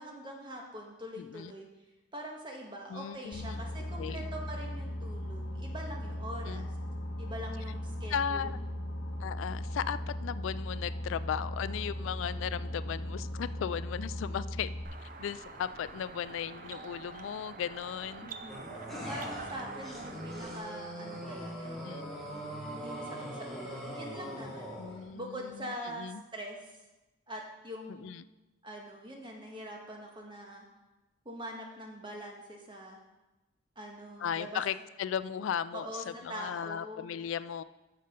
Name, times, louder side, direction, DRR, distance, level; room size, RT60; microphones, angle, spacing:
voice 1, 0.0-1.7 2.1-6.7 7.2-8.8 18.2-18.6 19.1-21.8 22.8-26.8 27.3-28.1 28.6-30.6 31.2-33.0 33.7-34.6 35.7-37.3, equal, 25° right, 0 dB, 1.5 m, -44 dB
voice 2, 1.2-1.5 2.9-3.6 4.0-4.3 6.5-6.6 8.1-8.6 9.2-14.7 15.0-18.3 21.8-22.1 24.8-26.2 27.9-28.2 34.2-37.6, left 8 dB, 75° left, 15 dB, 0.3 m, -36 dB
Boat Water vehicle, 3.3-14.8, left 1 dB, 55° left, 1.1 m, -38 dB
sound 1, 14.8-20.6, right 4 dB, 40° right, 0.6 m, -46 dB
sound 2, 18.5-25.1, equal, ahead, 1.6 m, -41 dB
9.5 x 6.6 x 5.2 m, 1.0 s
head